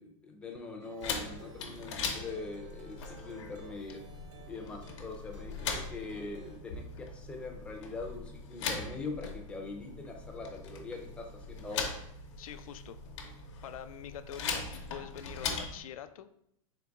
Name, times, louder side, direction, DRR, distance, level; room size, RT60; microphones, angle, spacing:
voice 1, 0.0-4.0 4.5-11.9, left 3 dB, 5° left, 1 dB, 0.4 m, -42 dB
Plucked string instrument, 0.8-6.6, right 1 dB, 60° right, 0.9 m, -53 dB
sound 1, 1.0-15.8, left 5 dB, 60° left, 0.8 m, -40 dB
voice 2, 12.3-13.0 13.6-14.6 14.9-16.3, left 10 dB, 85° left, 11 dB, 0.4 m, -45 dB
3.9 x 2.9 x 3.4 m, 0.74 s
supercardioid pair, 160°, 18 cm